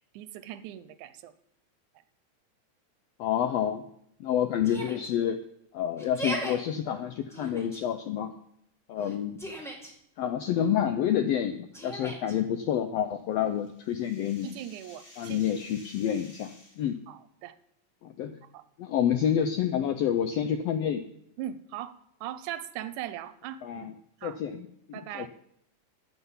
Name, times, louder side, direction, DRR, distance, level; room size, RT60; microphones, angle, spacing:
voice 1, 0.0-1.3 14.4-15.5 17.1-17.6 18.4-18.6 20.4-20.5 21.4-23.9 24.2-24.4 24.9-25.3, right 11 dB, 85° right, 14 dB, 2.1 m, -40 dB
voice 2, 3.2-3.8 4.2-5.4 5.7-8.3 8.9-9.4 10.2-14.5 15.2-17.0 18.0-18.4 18.8-21.1 23.6-23.9 24.2-25.3, left 9 dB, 90° left, 8 dB, 1.4 m, -28 dB
Yell, 4.6-5.1 6.0-6.6 7.3-7.8 9.0-9.9 11.7-12.3, right 1 dB, ahead, 0.7 m, -37 dB
sound 1, 13.1-16.9, left 1 dB, 25° left, 1.9 m, -54 dB
15.0 x 6.0 x 5.6 m, 0.75 s
omnidirectional pair, 3.5 m